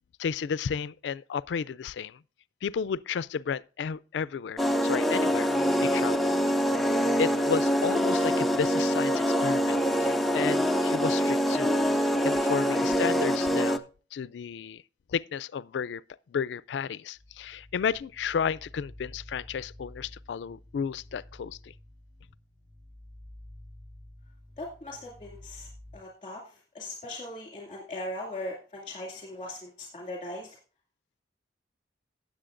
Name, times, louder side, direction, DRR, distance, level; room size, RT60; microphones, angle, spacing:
voice 1, 0.2-2.2 2.6-5.5 5.8-6.4 7.2-13.9 14.1-14.8 15.1-16.0 16.3-21.7, left 6 dB, 80° left, 0.3 m, -33 dB
sound 1, 4.6-13.8, equal, ahead, 0.5 m, -25 dB
sound 2, 17.2-26.0, left 1 dB, 25° right, 3.4 m, -50 dB
voice 2, 24.6-30.6, left 1 dB, 30° left, 2.3 m, -39 dB
17.5 x 7.4 x 2.5 m
head